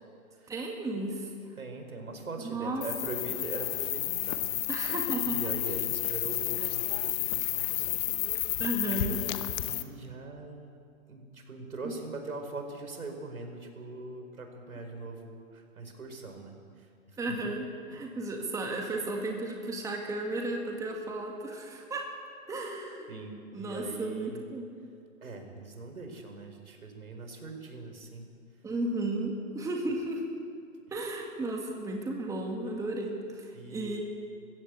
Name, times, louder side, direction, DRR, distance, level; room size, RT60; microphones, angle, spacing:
voice 1, 0.5-1.3 2.4-2.8 4.7-5.4 6.6-6.7 8.6-9.2 11.8-12.0 17.2-22.1 22.5-23.1 23.5-24.6 28.6-30.3 30.9-34.0, right 2 dB, 10° right, 1 dB, 1.9 m, -34 dB
voice 2, 1.6-4.6 5.2-8.5 8.8-17.5 17.9-18.1 23.1-24.4 25.2-28.3 33.5-34.0, right 3 dB, 85° right, 4 dB, 4.8 m, -42 dB
sound 1, 2.8-9.8, left 16 dB, 30° left, 0.9 m, -31 dB
21.0 x 15.5 x 8.4 m, 2.3 s
hypercardioid pair, 135°, 42 cm